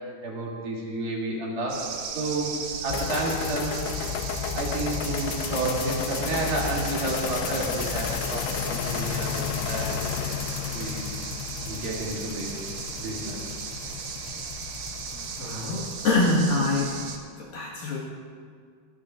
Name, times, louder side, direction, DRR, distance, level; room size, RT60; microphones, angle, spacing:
voice 1, 0.2-1.8 2.1-2.5 2.8-3.8 4.5-10.1 10.7-11.0 11.6-12.7 13.0-13.4, right 2 dB, 55° right, -5 dB, 4.2 m, -30 dB
sound 1, 1.7-17.2, right 6 dB, 75° right, 1.9 m, -37 dB
sound 2, 2.9-16.4, left 8 dB, 85° left, 2.9 m, -33 dB
voice 2, 15.4-17.0 17.4-18.0, left 2 dB, 60° left, -4 dB, 2.9 m, -25 dB
24.0 x 17.0 x 2.5 m, 2.1 s
omnidirectional pair, 5.3 m